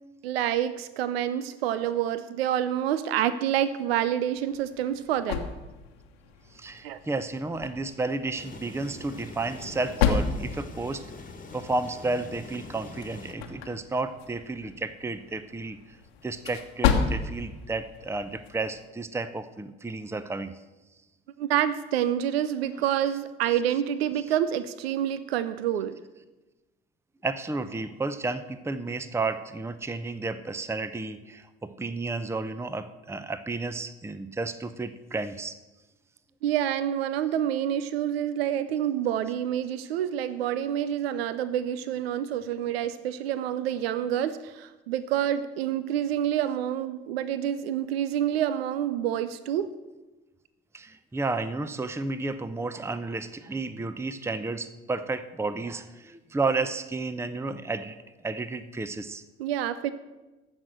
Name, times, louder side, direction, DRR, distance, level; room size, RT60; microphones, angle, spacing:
voice 1, 0.2-5.5 6.8-7.0 21.4-26.0 36.4-49.7 59.4-59.9, right 10 dB, 80° right, 14 dB, 0.6 m, -27 dB
sound 1, 4.4-18.9, left 7 dB, 80° left, 1.2 m, -33 dB
voice 2, 6.5-11.0 11.5-16.0 16.2-20.5 27.2-35.6 50.7-58.0 58.2-59.2, right 3 dB, 10° right, 13 dB, 0.7 m, -32 dB
sound 2, 8.4-13.3, left 3 dB, 25° left, 1.4 m, -44 dB
15.0 x 6.3 x 7.6 m, 1.1 s
figure-of-eight pair, 50°, 30 cm